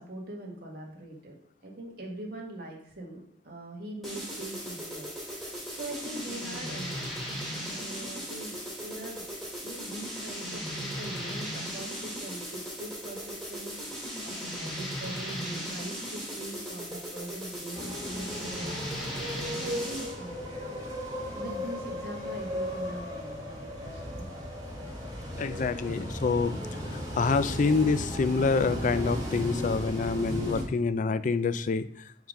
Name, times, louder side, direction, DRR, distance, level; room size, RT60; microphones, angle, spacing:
voice 1, 0.0-1.4 1.6-7.1 7.5-18.8 19.6-20.8 21.3-24.3 25.3-25.4, right 1 dB, 55° right, -1 dB, 1.7 m, -42 dB
sound 1, 4.0-20.2, equal, ahead, 2.4 m, -37 dB
sound 2, 17.7-30.6, equal, 20° right, 1.6 m, -36 dB
voice 2, 25.4-26.6 26.9-31.9, left 4 dB, 45° left, 13 dB, 0.3 m, -27 dB
7.0 x 3.9 x 5.2 m, 0.67 s
head